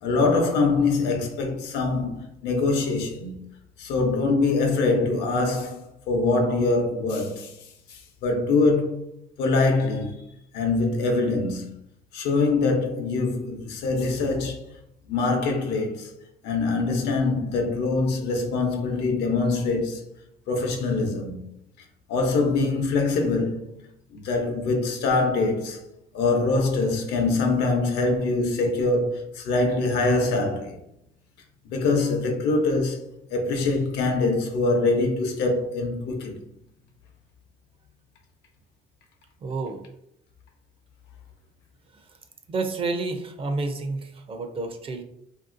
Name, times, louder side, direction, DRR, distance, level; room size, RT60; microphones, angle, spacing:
voice 1, 0.0-3.4 3.8-7.6 7.9-9.0 9.4-10.2 10.5-11.7 12.1-14.6 15.1-16.1 16.4-20.0 20.5-21.5 22.1-25.9 26.1-30.8 31.6-33.0 33.3-36.4, left 3 dB, 80° left, 0.7 m, -24 dB
voice 2, 39.4-39.9 41.9-42.2 42.5-45.0, right 3 dB, 35° right, 0.4 m, -30 dB
2.9 x 2.6 x 2.5 m
cardioid pair, 110°, 17 cm